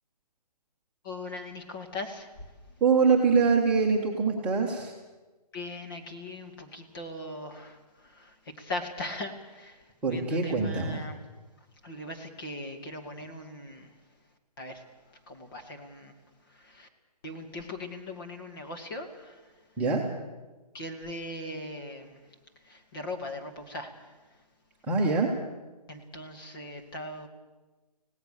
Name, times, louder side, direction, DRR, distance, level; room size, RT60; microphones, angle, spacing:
voice 1, 1.0-2.3 5.5-7.8 8.0-9.8 10.1-11.2 11.8-13.9 14.6-14.8 15.3-16.1 16.5-16.9 17.2-19.4 20.7-22.2 22.7-23.9 25.9-27.3, left 2 dB, 35° left, 3 dB, 2.5 m, -39 dB
voice 2, 2.8-4.9 10.0-11.0 19.8-20.0 24.9-25.3, right 4 dB, 5° right, -5 dB, 1.8 m, -24 dB
27.0 x 18.0 x 6.8 m, 1.2 s
hypercardioid pair, 165°, 21 cm